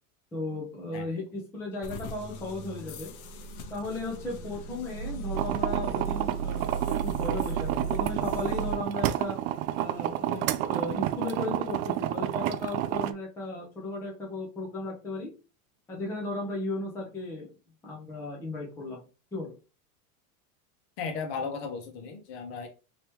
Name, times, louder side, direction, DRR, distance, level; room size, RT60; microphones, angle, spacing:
voice 1, 0.3-3.1 3.7-6.6 6.9-9.4 9.8-15.3 15.9-17.5 17.8-19.0 19.3-19.5, left 2 dB, 5° left, 0.5 m, -35 dB
sound 1, 1.8-8.8, right 5 dB, 75° left, 1.0 m, -36 dB
sound 2, 5.3-13.1, right 13 dB, 70° right, 0.5 m, -30 dB
voice 2, 21.0-22.7, left 5 dB, 50° left, 1.1 m, -35 dB
3.4 x 3.0 x 3.0 m
supercardioid pair, 160°, 44 cm